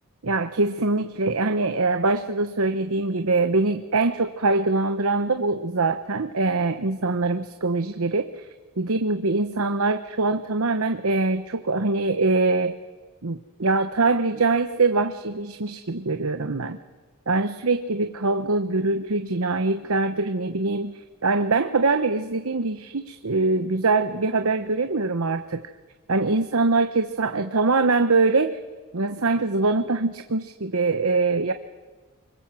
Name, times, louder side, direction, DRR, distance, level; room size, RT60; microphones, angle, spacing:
voice 1, 0.2-8.3 8.8-12.8 13.2-16.8 17.3-25.6 26.1-28.6 28.9-31.5, right 3 dB, 65° right, 9 dB, 1.0 m, -23 dB
25.0 x 22.0 x 7.6 m, 1.3 s
head